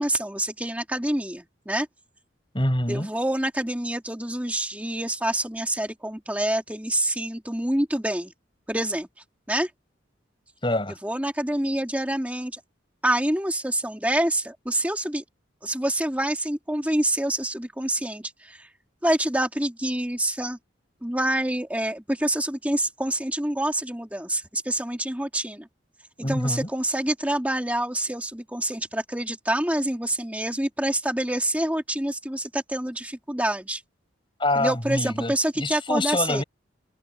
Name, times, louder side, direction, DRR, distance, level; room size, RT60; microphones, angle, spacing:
voice 1, 0.0-1.9 2.9-8.3 8.7-9.1 9.5-9.7 11.0-12.6 13.0-15.2 15.6-18.7 19.0-20.6 21.0-25.7 26.2-33.8 34.6-36.4, right 1 dB, 10° right, 2.4 m, -27 dB
voice 2, 2.5-3.1 10.6-11.0 26.2-26.7 34.4-36.4, left 1 dB, 25° left, 7.9 m, -26 dB
head